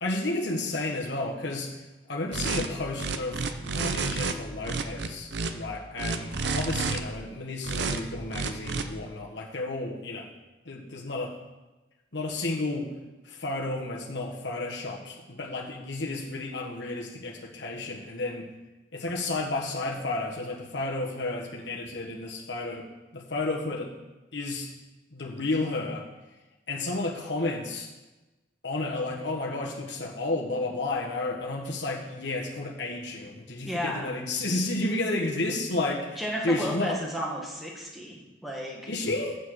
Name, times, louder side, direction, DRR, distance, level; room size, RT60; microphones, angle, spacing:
voice 1, 0.0-1.7 2.1-10.3 10.6-11.3 12.1-12.9 13.3-18.5 18.9-22.9 23.1-23.9 24.3-24.7 25.1-26.1 26.7-27.9 28.6-36.9 38.9-39.4, left 2 dB, 70° left, -1 dB, 1.4 m, -32 dB
sound 1, 2.3-2.7 3.0-4.3 4.6-5.5 6.0-7.0 7.6-8.0 8.3-8.8, right 4 dB, 65° right, 0.7 m, -29 dB
voice 2, 33.6-34.1 36.2-38.9, equal, ahead, -3 dB, 1.6 m, -33 dB
8.0 x 7.0 x 6.5 m, 1.1 s
head